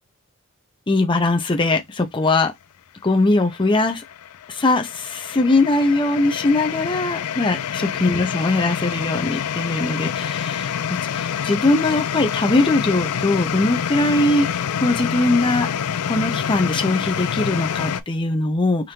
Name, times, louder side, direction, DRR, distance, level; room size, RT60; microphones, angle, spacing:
voice 1, 0.9-2.5 3.0-4.0 4.5-10.7 11.1-15.7 16.1-18.9, left 2 dB, 20° left, 0.6 m, -21 dB
sound 1, 3.3-18.0, left 8 dB, 85° left, 0.4 m, -27 dB
5.0 x 2.6 x 2.9 m
head